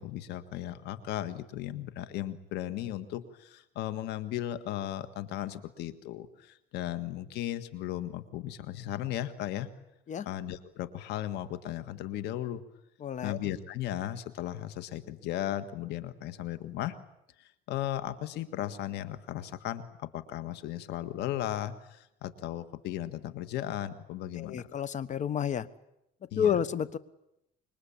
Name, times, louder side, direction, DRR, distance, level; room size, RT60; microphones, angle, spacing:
voice 1, 0.0-9.7 10.3-12.6 13.2-17.0 17.4-24.7 26.3-26.6, left 12 dB, 85° left, 11 dB, 1.7 m, -36 dB
voice 2, 13.0-13.4 24.3-25.7 26.3-27.0, left 8 dB, 45° left, 15 dB, 1.3 m, -30 dB
26.0 x 22.5 x 8.7 m, 0.83 s
cardioid pair, 110°, 17 cm